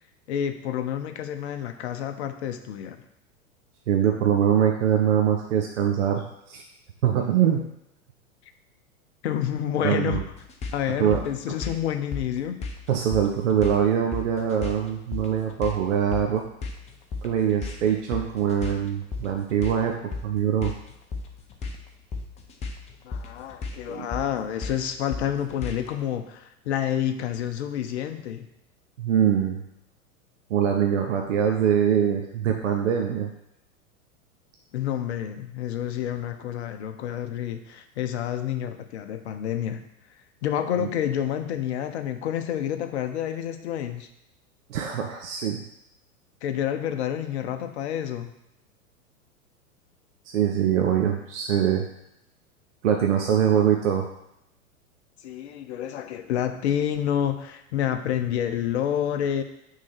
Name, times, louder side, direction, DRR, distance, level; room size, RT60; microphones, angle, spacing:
voice 1, 0.3-3.0 9.2-10.2 10.7-12.6 23.0-28.5 34.7-39.8 40.4-44.1 46.4-48.3 55.2-59.4, left 10 dB, 50° left, 7 dB, 0.8 m, -29 dB
voice 2, 3.9-6.6 7.0-7.6 9.8-10.2 11.0-11.2 12.9-16.4 17.2-19.9 20.2-20.7 23.9-24.0 29.0-29.6 30.5-33.3 40.8-40.9 44.7-45.6 50.3-51.8 52.8-54.1, right 9 dB, 55° right, 2 dB, 0.9 m, -23 dB
sound 1, 10.1-26.0, left 3 dB, 15° left, 0.7 m, -36 dB
6.1 x 3.8 x 6.0 m, 0.81 s
figure-of-eight pair, 95°, 44 cm